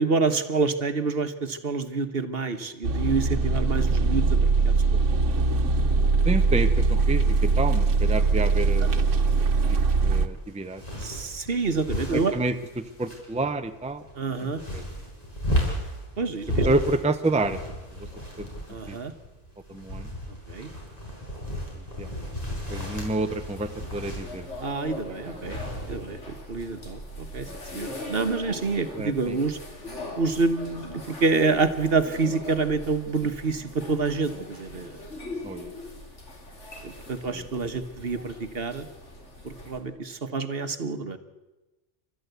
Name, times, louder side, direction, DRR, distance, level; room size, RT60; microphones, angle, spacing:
voice 1, 0.0-5.0 11.0-12.3 14.2-14.6 16.2-16.7 18.7-19.1 20.5-20.7 24.6-25.6 25.9-27.5 27.7-29.6 30.2-35.0 36.8-38.9 39.4-41.2, right 4 dB, 55° right, 9 dB, 1.4 m, -27 dB
sound 1, 2.8-10.3, right 4 dB, 90° right, 1.5 m, -22 dB
voice 2, 6.2-9.0 9.7-11.0 12.1-14.0 14.4-14.5 14.7-14.8 16.6-17.6 18.0-18.1 18.4-18.5 18.9-19.0 19.7-20.1 21.7-22.1 22.7-24.5 25.1-25.4 27.5-27.6 28.9-29.4 35.4-35.7 37.3-37.5, right 2 dB, 5° right, 8 dB, 0.8 m, -29 dB
sound 2, 8.7-26.3, equal, 35° left, 5.3 m, -34 dB
sound 3, 22.5-39.8, left 1 dB, 75° left, 3.6 m, -41 dB
29.5 x 13.0 x 8.2 m, 1.1 s
omnidirectional pair, 1.2 m